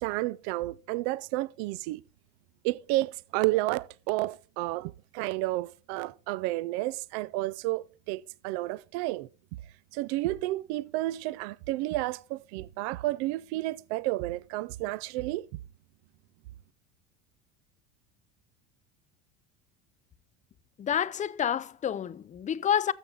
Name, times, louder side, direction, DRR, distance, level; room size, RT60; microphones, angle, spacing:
voice 1, 0.0-2.0 2.6-9.3 9.9-15.5, right 18 dB, 70° right, 0.5 m, -31 dB
voice 2, 20.8-22.9, left 9 dB, 20° left, 0.5 m, -28 dB
13.5 x 6.9 x 3.7 m
supercardioid pair, 110°, 34 cm